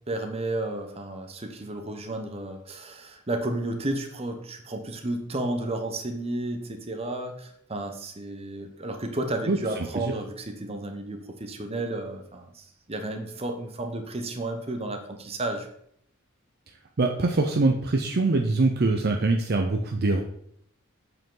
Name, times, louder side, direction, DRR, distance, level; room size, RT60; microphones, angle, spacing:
voice 1, 0.1-15.7, right 2 dB, 30° right, 5 dB, 0.9 m, -32 dB
voice 2, 9.5-10.1 17.0-20.2, right 3 dB, 50° right, 3 dB, 0.6 m, -24 dB
7.7 x 4.9 x 3.8 m, 0.69 s
head